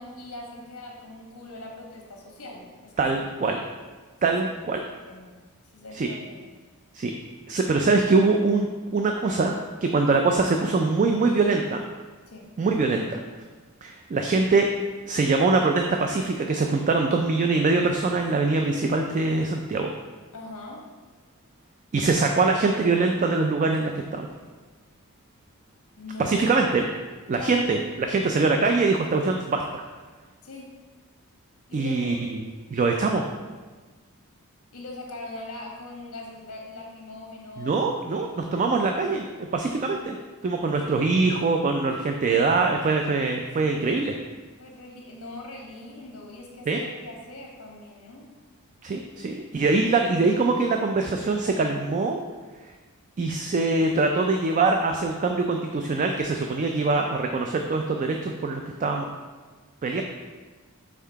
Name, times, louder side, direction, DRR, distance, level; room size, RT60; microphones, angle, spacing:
voice 1, 0.0-3.2 4.3-4.4 5.1-5.3 5.7-6.5 12.3-12.5 20.3-20.8 26.0-26.6 27.3-27.6 30.4-30.7 31.7-32.2 34.7-37.9 38.1-38.6 44.6-48.3, left 2 dB, 70° left, 0 dB, 1.2 m, -41 dB
voice 2, 3.0-3.6 4.2-4.9 5.9-6.1 6.9-7.1 7.5-11.8 12.6-13.2 13.8-14.7 15.1-19.9 21.9-24.3 26.2-26.9 27.3-29.8 31.7-32.4 32.7-33.2 37.6-40.2 40.4-44.1 46.7-46.8 48.8-52.2 53.2-59.1 59.8-60.0, right 3 dB, 35° right, 3 dB, 0.3 m, -23 dB
5.6 x 3.7 x 4.5 m, 1.4 s
head